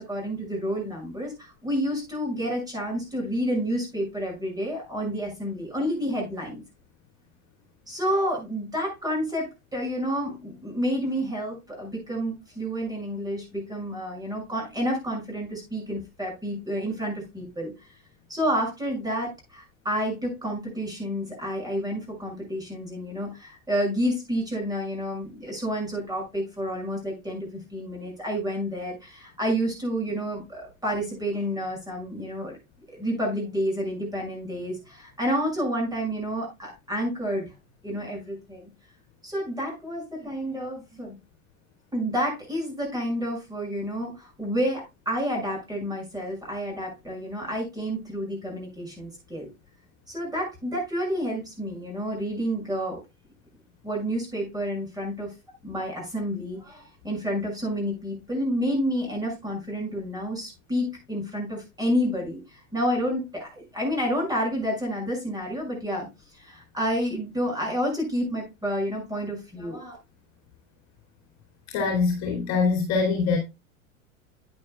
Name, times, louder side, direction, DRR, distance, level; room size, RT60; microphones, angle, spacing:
voice 1, 0.0-6.6 7.9-17.7 18.3-32.6 32.9-37.5 37.8-38.7 39.2-41.2 41.9-49.5 50.1-53.0 53.8-55.3 55.6-66.1 66.3-70.0, equal, 10° right, 6.6 m, -29 dB
voice 2, 71.7-73.4, left 4 dB, 40° left, 2.8 m, -23 dB
11.0 x 9.4 x 2.3 m
hypercardioid pair, 95°, 41 cm